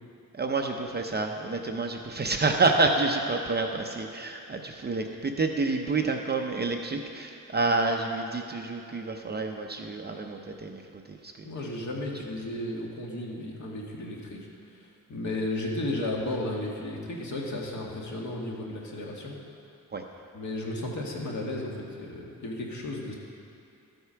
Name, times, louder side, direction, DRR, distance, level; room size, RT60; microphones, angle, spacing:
voice 1, 0.3-10.8 11.1-11.5 19.9-20.0, right 3 dB, 30° right, 3 dB, 0.6 m, -28 dB
voice 2, 11.4-14.4 14.7-19.4 20.3-23.1, left 1 dB, 55° left, -2 dB, 1.8 m, -34 dB
13.0 x 7.9 x 5.7 m, 2.7 s
wide cardioid pair, 180°, 34 cm